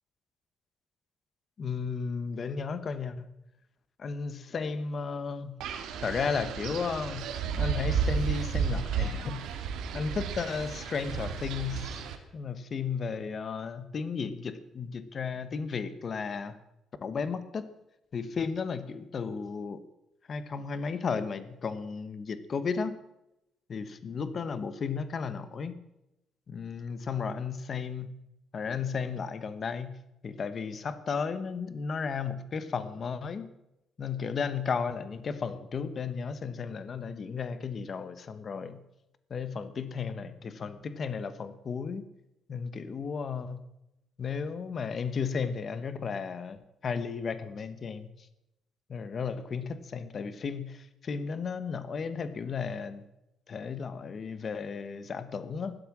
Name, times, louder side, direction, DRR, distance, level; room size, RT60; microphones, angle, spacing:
voice 1, 1.6-3.3 4.0-5.6 6.0-7.3 7.6-9.5 9.9-12.0 12.3-16.6 17.0-17.7 18.1-19.8 20.3-23.0 23.7-25.7 26.5-28.1 28.5-30.0 30.2-33.4 34.0-38.8 39.3-42.0 42.5-43.6 44.2-48.1 48.9-53.1 53.5-55.8, left 5 dB, 35° left, 12 dB, 1.1 m, -34 dB
Wind, 5.6-12.2, right 6 dB, 85° right, 2.1 m, -32 dB
15.0 x 12.0 x 7.4 m, 0.88 s
cardioid pair, 160°, 0 cm